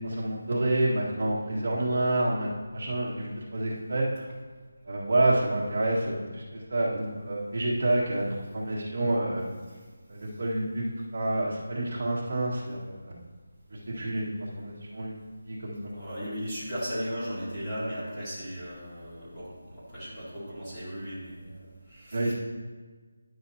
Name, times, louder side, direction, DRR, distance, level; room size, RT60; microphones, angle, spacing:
voice 1, 0.0-4.2 4.9-6.4 6.7-9.5 10.1-10.9 11.1-13.1 13.9-14.3 14.6-15.1 15.4-16.0 22.1-22.3, right 1 dB, 50° right, -6 dB, 1.7 m, -28 dB
voice 2, 15.9-22.3, equal, 10° left, -14 dB, 2.4 m, -36 dB
10.0 x 6.3 x 2.8 m, 1.4 s
figure-of-eight pair, 175°, 0 cm